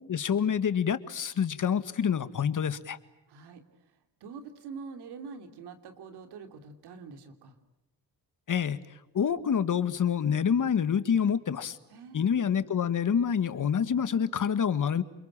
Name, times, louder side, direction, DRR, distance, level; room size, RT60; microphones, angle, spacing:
voice 1, 0.1-3.0 8.5-8.8 9.1-11.8 12.1-15.0, left 7 dB, 50° left, 13 dB, 1.8 m, -27 dB
voice 2, 3.3-3.6 4.2-7.6 11.9-12.3, right 5 dB, 90° right, 7 dB, 3.1 m, -45 dB
29.0 x 22.0 x 8.9 m, 0.90 s
cardioid pair, 80°, 39 cm